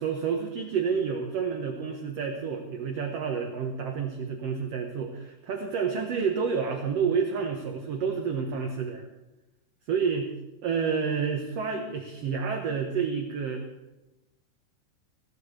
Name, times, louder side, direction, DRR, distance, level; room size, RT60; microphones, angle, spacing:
voice 1, 0.0-9.1 9.9-10.3 10.6-13.7, right 6 dB, 60° right, 3 dB, 1.9 m, -29 dB
21.0 x 17.0 x 3.3 m, 1.0 s
omnidirectional pair, 4.0 m